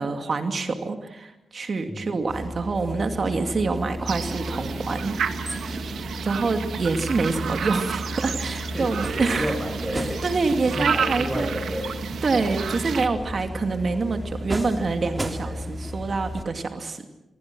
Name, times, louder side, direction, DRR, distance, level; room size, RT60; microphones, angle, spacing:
voice 1, 0.0-5.7 6.2-9.5 10.2-11.5 12.2-17.1, right 3 dB, 50° right, 6 dB, 2.6 m, -26 dB
sound 1, 2.3-16.4, equal, 25° right, 3.0 m, -34 dB
sound 2, 4.1-13.1, right 7 dB, 80° right, 1.9 m, -31 dB
voice 2, 8.7-10.3 10.7-12.0 15.4-15.7, equal, 5° right, 5 dB, 6.9 m, -31 dB
27.5 x 23.5 x 6.3 m, 0.90 s
cardioid pair, 80°, 0 cm